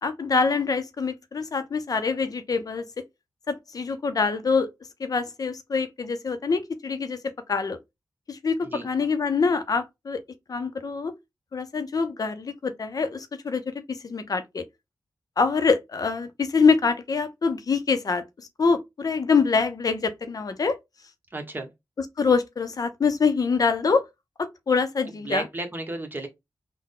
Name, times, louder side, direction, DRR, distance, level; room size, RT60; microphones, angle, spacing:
voice 1, 0.0-2.8 3.5-4.7 5.0-7.2 7.5-7.8 8.3-10.2 10.5-11.1 11.5-14.6 15.4-18.2 18.6-20.8 22.2-24.0 24.4-25.4, left 5 dB, 55° left, 0.5 m, -25 dB
voice 2, 21.3-21.7 25.2-26.3, right 2 dB, 25° right, 1.1 m, -33 dB
3.6 x 2.1 x 3.7 m
wide cardioid pair, 85°, 7 cm